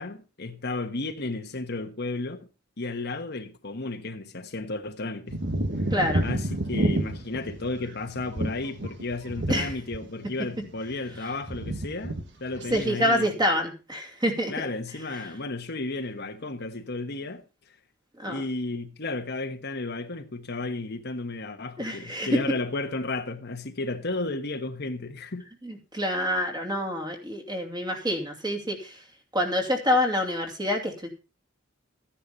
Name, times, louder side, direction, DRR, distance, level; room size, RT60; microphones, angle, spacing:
voice 1, 0.0-2.5 2.8-5.4 6.2-13.4 14.5-17.4 18.3-25.5, left 2 dB, 55° left, 1.3 m, -33 dB
sound 1, 5.3-10.3 10.5-11.2 11.4-12.2 12.5-12.9, right 1 dB, 60° right, 1.6 m, -29 dB
voice 2, 5.9-6.2 9.5-9.7 12.7-14.7 18.2-18.4 21.8-22.3 25.6-29.0 29.3-31.1, left 1 dB, 20° right, 2.7 m, -27 dB
14.0 x 10.0 x 4.0 m
head